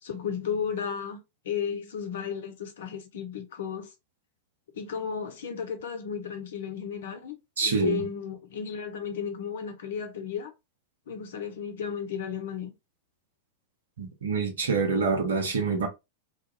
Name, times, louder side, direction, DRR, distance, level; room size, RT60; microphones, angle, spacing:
voice 1, 0.0-3.9 4.7-10.5 11.1-12.7, left 7 dB, 60° left, 0.6 m, -34 dB
voice 2, 7.6-8.1 14.0-15.9, right 4 dB, 65° right, 0.7 m, -26 dB
2.4 x 2.3 x 2.6 m
figure-of-eight pair, 90°, 0 cm